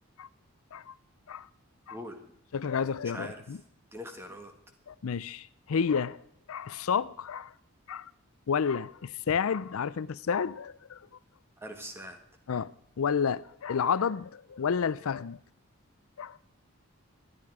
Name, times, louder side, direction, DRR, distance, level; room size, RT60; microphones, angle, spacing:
voice 1, 2.5-3.6 4.9-6.2 6.5-7.5 7.9-8.1 8.5-11.0 12.5-12.7 13.0-15.4 16.2-16.4, left 6 dB, 75° left, 0.5 m, -30 dB
voice 2, 3.0-3.4 3.9-4.5 11.6-12.2, equal, 10° right, 1.7 m, -42 dB
18.0 x 12.5 x 4.9 m
head